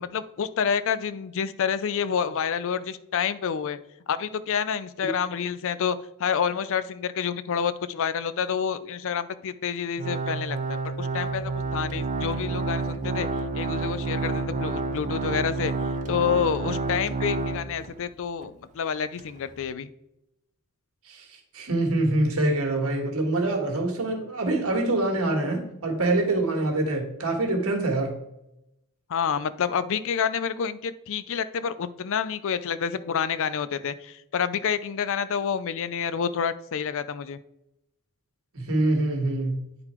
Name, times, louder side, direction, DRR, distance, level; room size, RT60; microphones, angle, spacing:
voice 1, 0.0-3.8 4.1-13.3 13.5-15.7 16.1-19.9 29.1-37.4, left 7 dB, 60° left, 14 dB, 0.4 m, -28 dB
Organ, 10.0-18.0 18.4-18.5 19.2-19.3, right 3 dB, 35° right, 0.5 m, -29 dB
voice 2, 21.5-28.1 38.5-39.6, right 2 dB, 70° right, 2 dB, 1.7 m, -25 dB
9.6 x 3.9 x 4.4 m, 0.85 s
head